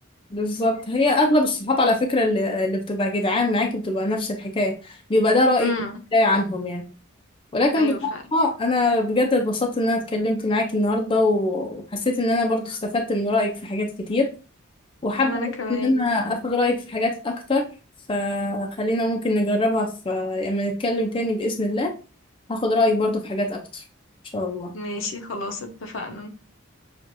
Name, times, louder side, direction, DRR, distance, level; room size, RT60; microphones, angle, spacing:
voice 1, 0.3-5.7 6.1-6.8 7.5-14.3 15.0-15.5 15.8-17.7 18.1-21.9 22.5-23.8 24.3-24.7, left 2 dB, 25° left, 0.5 m, -23 dB
voice 2, 5.6-6.0 7.8-8.2 15.1-16.1 24.7-26.3, left 2 dB, 65° left, 0.7 m, -31 dB
6.0 x 2.4 x 2.6 m
head